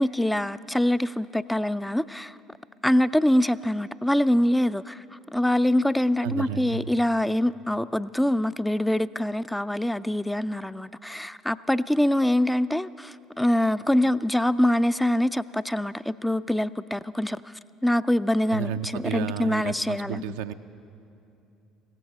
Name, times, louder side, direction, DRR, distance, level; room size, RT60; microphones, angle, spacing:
voice 1, 0.0-2.4 2.8-5.0 5.3-17.5 17.8-20.4, left 1 dB, 5° left, 15 dB, 0.3 m, -24 dB
voice 2, 6.2-6.9 18.5-20.5, right 9 dB, 70° right, 9 dB, 0.4 m, -32 dB
16.5 x 15.0 x 5.6 m, 2.7 s
figure-of-eight pair, 55°, 0 cm